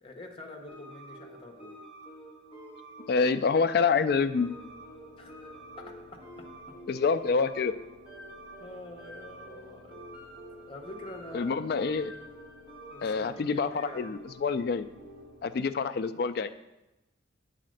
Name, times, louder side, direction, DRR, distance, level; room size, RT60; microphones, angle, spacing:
voice 1, 0.0-1.7 5.2-6.8 8.6-10.3 10.7-11.6 12.9-14.2, left 2 dB, 30° left, 2 dB, 1.0 m, -47 dB
sound 1, 0.7-15.4, right 1 dB, 10° right, 2.1 m, -48 dB
voice 2, 3.1-4.5 6.9-7.7 11.3-12.1 13.0-14.9 15.4-16.5, left 5 dB, 55° left, 12 dB, 0.3 m, -27 dB
sound 2, 4.1-15.8, left 4 dB, 40° right, 1.6 m, -55 dB
9.0 x 4.2 x 6.4 m, 0.98 s
head